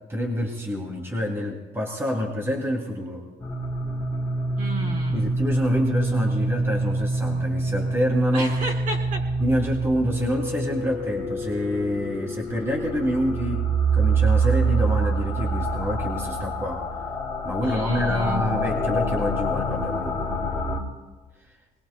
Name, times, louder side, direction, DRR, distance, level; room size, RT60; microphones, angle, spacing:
voice 1, 0.1-3.2 5.1-8.6 9.4-16.9 17.4-20.2, equal, 15° right, -1 dB, 2.6 m, -27 dB
sound 1, 3.4-20.8, right 2 dB, 5° left, 3.5 m, -26 dB
voice 2, 4.6-5.3 8.3-9.2 17.6-18.5, right 1 dB, 50° right, -2 dB, 5.1 m, -33 dB
23.5 x 21.5 x 2.3 m, 1.3 s
cardioid pair, 110°, 17 cm